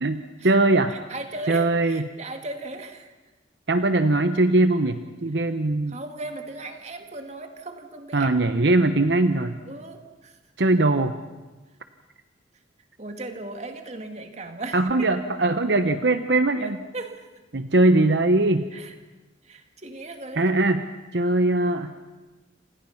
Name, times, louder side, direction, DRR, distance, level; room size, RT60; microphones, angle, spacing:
voice 1, 0.0-1.0 1.5-2.1 3.7-6.0 8.1-9.6 10.6-11.1 14.7-16.8 17.5-18.7 20.4-20.9 21.1-21.9, right 2 dB, 65° right, 9 dB, 1.0 m, -21 dB
voice 2, 0.9-3.1 5.9-8.3 9.7-10.4 13.0-15.1 16.6-17.3 18.7-18.9 19.4-20.5, right 2 dB, 35° right, 6 dB, 2.2 m, -37 dB
28.0 x 27.0 x 5.9 m, 1.2 s
head